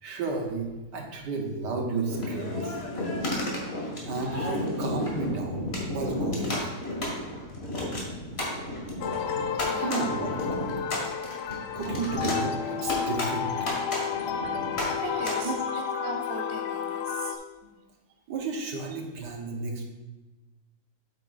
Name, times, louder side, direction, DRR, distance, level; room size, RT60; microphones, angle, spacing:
voice 1, 0.0-2.8 4.0-5.7 5.9-6.7 9.8-10.3 11.7-13.5 15.4-15.6 18.3-19.8, right 3 dB, 65° right, 1 dB, 1.6 m, -32 dB
sound 1, 2.1-15.3, left 1 dB, 35° left, 1.8 m, -32 dB
sound 2, 9.0-17.4, left 7 dB, 70° left, 1.1 m, -31 dB
voice 2, 9.7-10.1 11.8-12.0 14.2-14.4 15.0-17.4, right 3 dB, 45° right, 2 dB, 0.9 m, -39 dB
8.3 x 8.2 x 2.4 m, 1.1 s
omnidirectional pair, 2.0 m